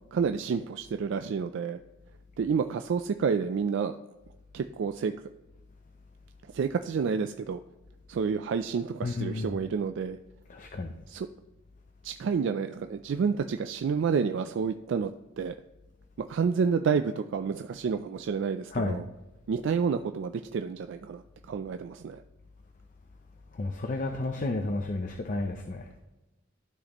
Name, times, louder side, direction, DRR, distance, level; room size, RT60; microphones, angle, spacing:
voice 1, 0.1-1.8 2.4-4.0 4.5-5.1 6.5-7.6 8.1-10.2 11.1-11.3 12.0-15.1 15.4-15.6 16.2-19.1 19.5-22.2, right 6 dB, 60° right, 8 dB, 0.3 m, -29 dB
voice 2, 9.0-9.6 10.5-10.9 18.7-19.0 23.6-25.9, left 2 dB, 40° left, 5 dB, 0.5 m, -32 dB
12.5 x 4.2 x 3.0 m, 1.1 s
head